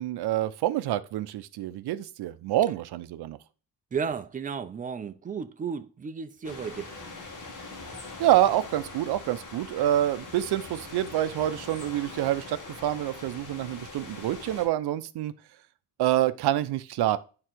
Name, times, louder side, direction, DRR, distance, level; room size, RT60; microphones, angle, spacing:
voice 1, 0.0-3.4 8.2-15.3 16.0-17.2, right 13 dB, 65° right, 0.6 m, -27 dB
voice 2, 3.9-6.9, right 6 dB, 20° right, 0.4 m, -33 dB
sound 1, 6.4-14.7, left 3 dB, 45° left, 2.1 m, -42 dB
8.7 x 3.8 x 4.5 m
cardioid pair, 175°, 42 cm